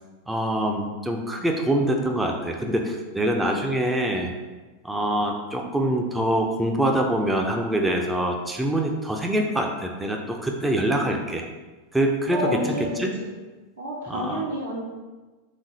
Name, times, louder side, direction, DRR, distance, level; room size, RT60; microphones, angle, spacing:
voice 1, 0.3-4.3 4.8-11.5 11.9-12.6 13.0-13.1 14.1-14.4, right 1 dB, 5° right, 1 dB, 0.5 m, -24 dB
voice 2, 12.3-13.3 13.8-14.8, equal, 70° right, -4 dB, 1.0 m, -29 dB
3.7 x 3.2 x 4.0 m, 1.2 s
figure-of-eight pair, 90°, 0 cm